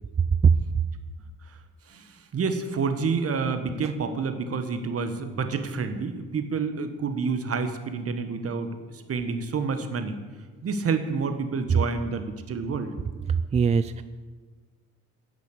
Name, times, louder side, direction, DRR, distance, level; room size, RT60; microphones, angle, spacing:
voice 1, 1.9-10.2 10.6-12.9, right 5 dB, 50° right, 8 dB, 1.4 m, -29 dB
voice 2, 13.3-14.0, right 6 dB, 25° right, 13 dB, 0.3 m, -21 dB
10.5 x 6.9 x 8.2 m, 1.4 s
cardioid pair, 90°, 30 cm